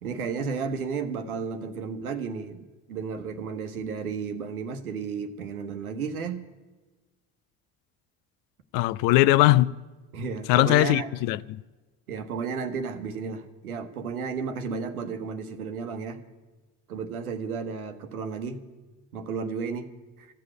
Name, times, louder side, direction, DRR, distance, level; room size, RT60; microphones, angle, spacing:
voice 1, 0.0-6.4 10.1-11.1 12.1-16.2 16.9-18.6 19.1-19.9 20.2-20.3, right 5 dB, 75° right, 1.1 m, -33 dB
voice 2, 8.7-9.7 10.5-11.6, left 17 dB, 50° left, 0.5 m, -20 dB
14.0 x 7.8 x 9.7 m
figure-of-eight pair, 50°, 44 cm